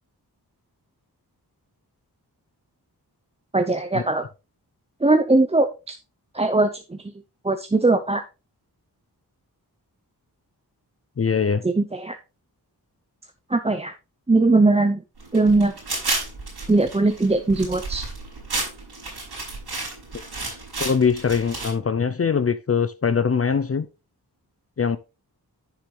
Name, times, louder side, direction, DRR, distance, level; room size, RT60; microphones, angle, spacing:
voice 1, 3.5-4.2 5.0-5.9 6.3-7.0 7.4-8.2 11.6-12.2 13.5-13.9 14.3-15.0 15.3-15.7 16.7-18.0, right 2 dB, 15° right, 0.6 m, -20 dB
voice 2, 11.2-11.6 20.8-23.9 24.8-25.0, left 6 dB, 40° left, 0.5 m, -22 dB
sound 1, 15.2-21.7, right 3 dB, 90° right, 5.6 m, -32 dB
9.7 x 6.7 x 3.2 m
wide cardioid pair, 80°, 39 cm